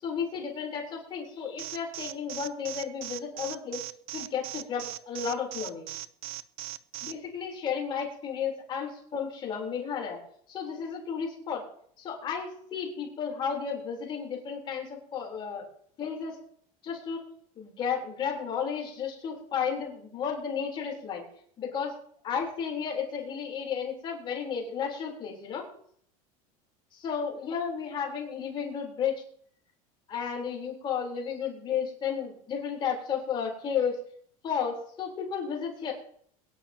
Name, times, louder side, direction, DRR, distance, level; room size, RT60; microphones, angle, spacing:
voice 1, 0.0-3.8 4.1-6.0 7.0-10.2 10.5-11.6 12.0-15.7 16.0-16.4 16.8-17.2 17.6-21.2 21.6-21.9 22.2-25.7 26.9-29.2 30.1-34.0 34.4-35.9, left 7 dB, 25° left, -1 dB, 3.8 m, -33 dB
Alarm, 1.6-7.1, right 16 dB, 90° right, 0.8 m, -38 dB
22.5 x 10.5 x 2.9 m, 0.63 s
supercardioid pair, 165°, 18 cm